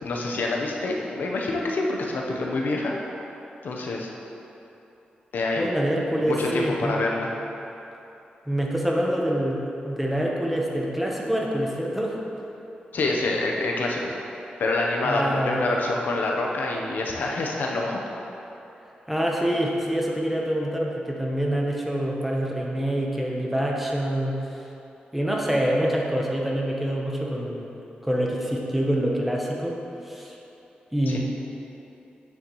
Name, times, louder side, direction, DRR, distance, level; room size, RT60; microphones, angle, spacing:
voice 1, 0.0-2.9 3.6-4.1 5.3-5.7 6.2-7.3 12.9-14.1 14.6-18.0 31.1-31.2, left 2 dB, 75° left, -1 dB, 0.9 m, -26 dB
voice 2, 5.6-7.0 8.5-12.2 15.0-15.7 19.1-24.6 25.1-27.7 28.0-29.8 30.0-30.3 30.9-31.2, equal, 5° right, -2 dB, 1.0 m, -26 dB
8.6 x 7.0 x 3.2 m, 3.0 s
wide cardioid pair, 100°, 3 cm